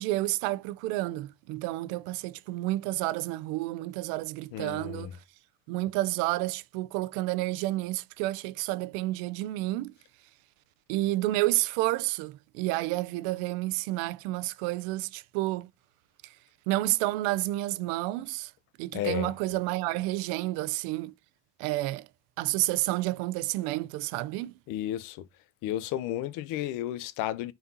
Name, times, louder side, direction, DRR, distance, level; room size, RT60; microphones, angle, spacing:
voice 1, 0.0-5.1 5.7-9.9 10.9-15.7 16.2-16.3 16.7-18.5 18.8-21.1 21.6-22.1 22.4-24.6, right 18 dB, 75° right, 0.6 m, -30 dB
voice 2, 4.5-5.2 18.9-19.3 24.7-25.3 25.6-27.5, left 12 dB, 65° left, 0.8 m, -33 dB
11.0 x 4.2 x 2.8 m
cardioid pair, 130°, 34 cm